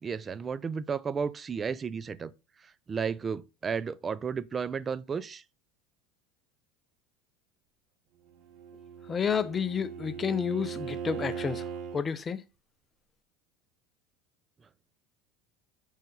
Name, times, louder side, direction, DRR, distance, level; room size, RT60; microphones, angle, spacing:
voice 1, 0.0-2.3 2.9-5.4, right 6 dB, 30° right, 0.5 m, -33 dB
Bowed string instrument, 8.4-12.1, right 7 dB, 60° right, 1.3 m, -39 dB
voice 2, 9.1-11.6 11.9-12.4, left 7 dB, 30° left, 0.7 m, -30 dB
6.5 x 5.0 x 3.9 m
hypercardioid pair, 90°, 0 cm